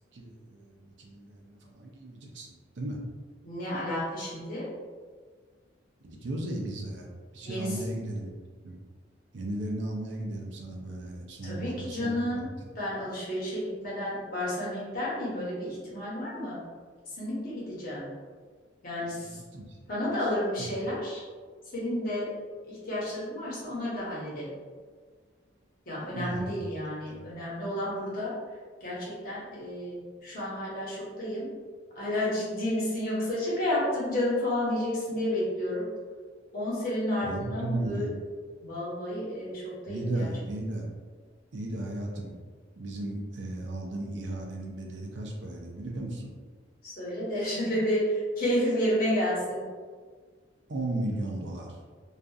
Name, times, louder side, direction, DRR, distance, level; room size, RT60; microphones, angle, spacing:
voice 1, 0.1-3.0 6.0-7.1 7.3-8.3 8.6-8.8 9.3-12.2 19.1-19.8 20.2-20.3 20.6-20.7 26.1-26.6 27.1-27.3 37.2-38.2 39.9-40.9 41.5-42.4 42.8-46.3 50.7-51.8, right 1 dB, 65° right, 0 dB, 0.5 m, -35 dB
voice 2, 3.4-4.7 7.4-7.8 11.4-12.5 12.7-16.6 17.2-18.1 18.8-19.4 19.9-21.2 21.7-22.3 22.7-24.5 25.9-28.3 28.8-31.5 31.9-35.8 36.5-38.1 38.6-40.3 46.8-49.6, left 1 dB, 50° left, -7 dB, 0.9 m, -31 dB
2.7 x 2.4 x 2.3 m, 1.5 s
head